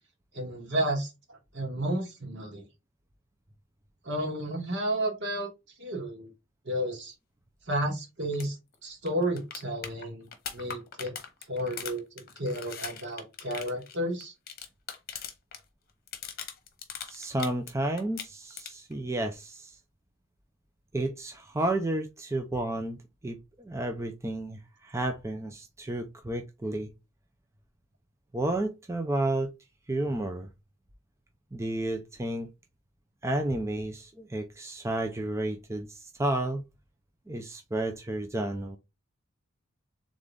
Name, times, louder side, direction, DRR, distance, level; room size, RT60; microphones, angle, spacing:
voice 1, 0.3-2.6 4.0-5.5 5.8-6.3 6.6-7.1 7.7-8.6 8.8-11.1 11.5-14.3, right 1 dB, 55° right, 2.0 m, -32 dB
sound 1, 8.3-8.5 8.7-8.8 9.1-15.6 15.9-17.7 18.0-18.9 21.0-21.1, left 7 dB, 45° left, 1.0 m, -40 dB
voice 2, 17.1-19.8 20.9-23.0 23.2-26.9 28.3-29.5 29.9-30.5 31.5-32.5 33.2-36.6 37.3-38.8, right 1 dB, 15° right, 0.4 m, -31 dB
3.8 x 3.7 x 3.4 m
head